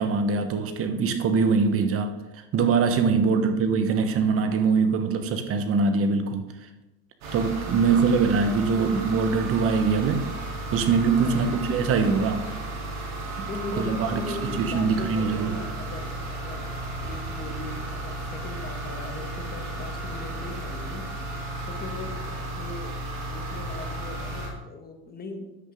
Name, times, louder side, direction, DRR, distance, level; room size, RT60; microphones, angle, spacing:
voice 1, 0.0-6.5 7.3-10.3 10.7-12.5 13.8-15.6, right 5 dB, 50° right, 8 dB, 1.3 m, -23 dB
voice 2, 3.1-3.6 7.8-8.1 11.2-11.7 13.4-21.1 21.6-25.6, left 3 dB, 30° left, 4 dB, 1.8 m, -39 dB
sound 1, 7.2-24.5, right 2 dB, 65° right, 3.3 m, -34 dB
9.9 x 8.2 x 3.7 m, 0.95 s
supercardioid pair, 95°, 30 cm